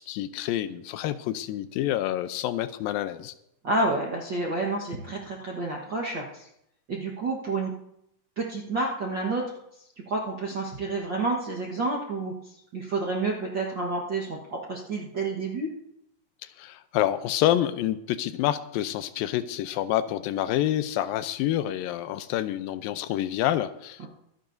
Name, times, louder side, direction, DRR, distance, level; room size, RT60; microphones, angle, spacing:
voice 1, 0.0-3.3 16.6-24.1, left 12 dB, 85° left, 12 dB, 2.4 m, -28 dB
voice 2, 3.6-6.5 6.9-7.7 8.4-9.5 10.1-15.7, right 2 dB, 60° right, -2 dB, 1.2 m, -29 dB
24.5 x 10.5 x 2.7 m, 0.77 s
omnidirectional pair, 4.1 m